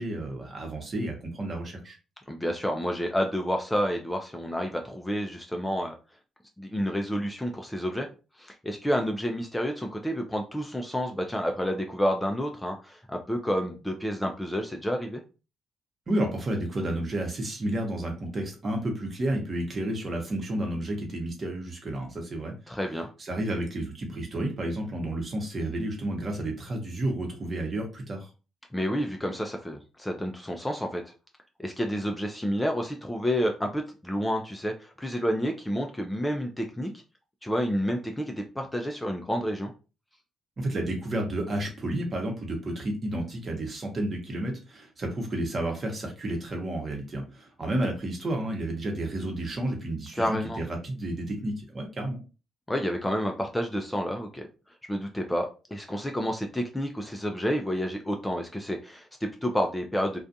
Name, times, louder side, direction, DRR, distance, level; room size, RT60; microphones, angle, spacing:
voice 1, 0.0-2.0 16.1-22.5 23.2-28.3 40.6-52.2, right 1 dB, 40° right, 2 dB, 0.9 m, -31 dB
voice 2, 2.3-5.9 6.6-8.1 8.4-15.2 22.7-23.1 28.7-31.1 31.6-36.9 37.4-39.7 50.2-50.6 52.7-54.5 54.9-60.2, equal, 10° left, 3 dB, 0.4 m, -29 dB
2.4 x 2.3 x 2.6 m, 0.32 s
cardioid pair, 90°, 0 cm